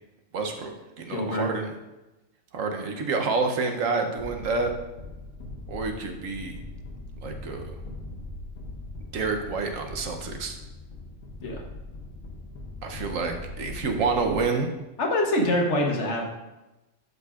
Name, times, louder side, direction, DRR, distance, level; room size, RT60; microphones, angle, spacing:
voice 1, 0.3-1.7 2.5-4.7 5.7-6.6 7.2-7.7 9.1-10.6 12.8-14.7, right 4 dB, 80° right, 4 dB, 1.3 m, -28 dB
voice 2, 1.1-1.5 11.4-11.6 15.0-16.2, left 1 dB, 65° left, 1 dB, 1.3 m, -25 dB
sound 1, 4.2-14.4, left 2 dB, 80° left, 1.2 m, -40 dB
11.5 x 5.4 x 2.4 m, 1.0 s
omnidirectional pair, 1.3 m